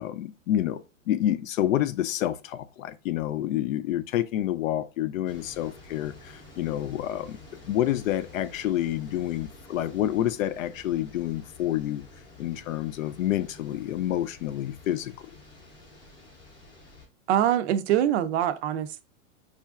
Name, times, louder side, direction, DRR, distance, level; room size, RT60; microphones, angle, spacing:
voice 1, 0.0-7.4 7.7-12.1 12.4-15.3, left 12 dB, 80° left, 0.5 m, -28 dB
sound 1, 5.3-17.1, left 2 dB, 10° left, 0.6 m, -49 dB
voice 2, 17.3-19.0, right 11 dB, 55° right, 0.5 m, -24 dB
4.4 x 2.5 x 2.3 m
hypercardioid pair, 140°, 39 cm